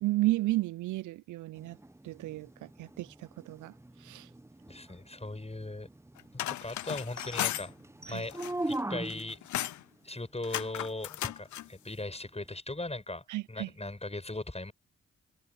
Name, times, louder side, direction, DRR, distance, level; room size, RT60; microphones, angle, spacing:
voice 1, 0.0-1.8 2.0-3.7 4.0-4.3 8.1-8.2 13.3-13.7, right 17 dB, 75° right, 0.4 m, -33 dB
sound 1, 1.5-9.5 12.5-12.6, right 1 dB, 10° right, 0.8 m, -41 dB
voice 2, 4.7-5.9 6.5-7.7 8.1-8.4 8.7-9.4 10.0-14.7, left 2 dB, 20° left, 6.9 m, -38 dB
sound 2, 6.2-7.7 8.2-8.8 9.1-9.8 10.4-11.7, left 13 dB, 70° left, 0.6 m, -35 dB
supercardioid pair, 45°, 31 cm